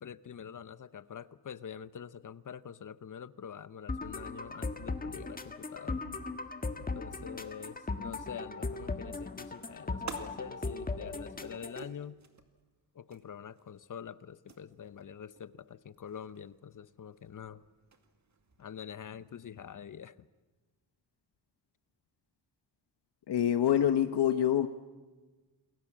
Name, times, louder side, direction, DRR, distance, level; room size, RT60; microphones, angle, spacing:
voice 1, 0.0-6.0 6.8-12.2 12.9-17.6 18.6-20.3, left 8 dB, 50° left, 16 dB, 0.9 m, -46 dB
sound 1, 3.9-11.9, left 3 dB, 20° left, 1.6 m, -38 dB
sound 2, 9.9-19.8, right 5 dB, 40° right, 2.3 m, -53 dB
voice 2, 23.3-24.7, left 10 dB, 75° left, 9 dB, 1.2 m, -26 dB
29.0 x 22.0 x 7.4 m, 1.2 s
wide cardioid pair, 150°, 41 cm